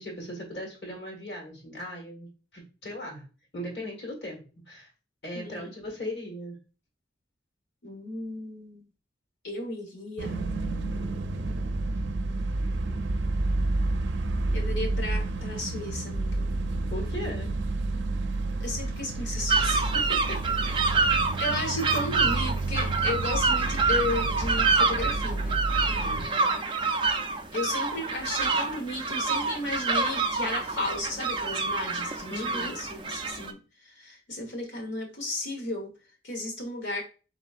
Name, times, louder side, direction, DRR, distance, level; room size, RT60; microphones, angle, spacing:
voice 1, 0.0-3.3 3.5-4.9 5.2-6.6 16.9-17.6 19.9-20.5 25.9-26.3 32.3-32.8, left 1 dB, 65° left, -1 dB, 1.6 m, -38 dB
voice 2, 5.3-5.7 7.8-8.9 9.4-10.5 14.5-16.5 18.6-19.9 20.6-21.0 21.4-25.6 25.9-26.7 27.5-35.9 36.2-37.0, left 2 dB, 90° left, 2 dB, 1.4 m, -34 dB
sound 1, 10.2-26.3, right 2 dB, 85° right, 0.5 m, -30 dB
sound 2, 19.5-33.5, right 4 dB, 30° right, 0.4 m, -27 dB
4.1 x 3.8 x 2.4 m, 0.34 s
head